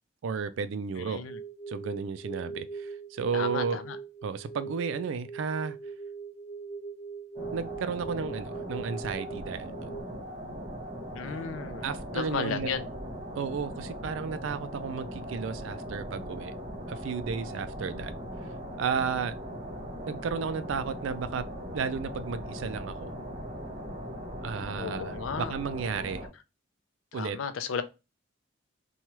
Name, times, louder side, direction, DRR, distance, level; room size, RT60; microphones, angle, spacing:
voice 1, 0.2-1.2 1.7-3.8 4.2-5.8 7.5-9.9 11.8-12.7 13.3-16.5 16.9-18.1 18.8-19.4 20.1-21.5 21.7-23.1 24.4-26.2 27.1-27.4, right 6 dB, 65° right, 0.3 m, -33 dB
voice 2, 1.0-1.4 3.3-4.0 11.1-12.9 24.8-25.5 27.1-27.8, left 6 dB, 75° left, 0.4 m, -34 dB
sound 1, 1.2-10.0, right 5 dB, 45° left, 1.1 m, -41 dB
sound 2, 7.3-26.3, equal, 25° right, 0.9 m, -39 dB
2.9 x 2.3 x 2.9 m
head